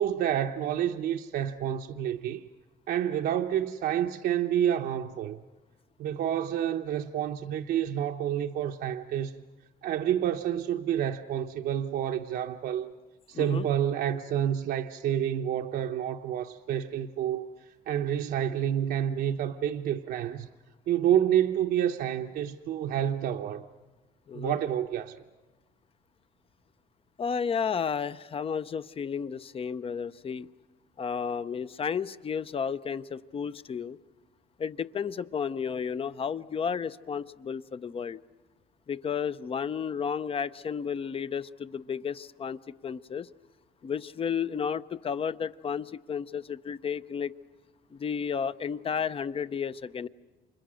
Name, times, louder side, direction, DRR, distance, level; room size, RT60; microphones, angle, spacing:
voice 1, 0.0-2.4 2.9-5.4 6.0-9.4 9.8-12.9 13.3-20.5 20.9-23.7 24.3-25.2, right 10 dB, 65° right, 0.9 m, -29 dB
voice 2, 13.3-13.7 24.3-24.6 27.2-30.5 31.0-34.0 34.6-38.2 38.9-43.3 43.8-47.3 47.9-50.1, left 6 dB, 35° left, 0.7 m, -32 dB
29.5 x 25.5 x 6.4 m
cardioid pair, 110°, 17 cm